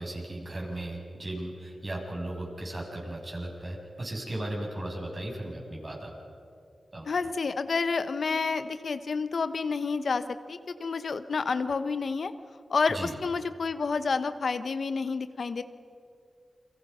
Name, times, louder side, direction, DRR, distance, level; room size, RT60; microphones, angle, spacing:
voice 1, 0.0-6.1 6.9-7.1 12.9-13.2, right 1 dB, 45° right, -1 dB, 7.3 m, -36 dB
voice 2, 7.1-12.3 12.7-15.6, left 4 dB, 70° left, 11 dB, 1.0 m, -29 dB
29.5 x 23.5 x 5.6 m, 2.4 s
cardioid pair, 50°, 0 cm